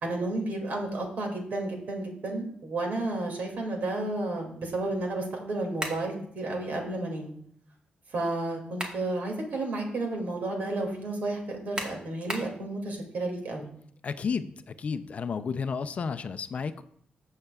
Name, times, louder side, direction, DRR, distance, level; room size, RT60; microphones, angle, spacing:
voice 1, 0.0-7.4 8.1-13.7, right 2 dB, 60° right, 1 dB, 2.3 m, -32 dB
sound 1, 5.8-6.1 8.4-9.1 9.6-9.7 11.8-12.6, right 1 dB, 30° right, 1.5 m, -35 dB
voice 2, 14.0-16.8, left 5 dB, 45° left, 11 dB, 0.5 m, -32 dB
15.5 x 6.5 x 2.4 m, 0.64 s
wide cardioid pair, 130°, 3 cm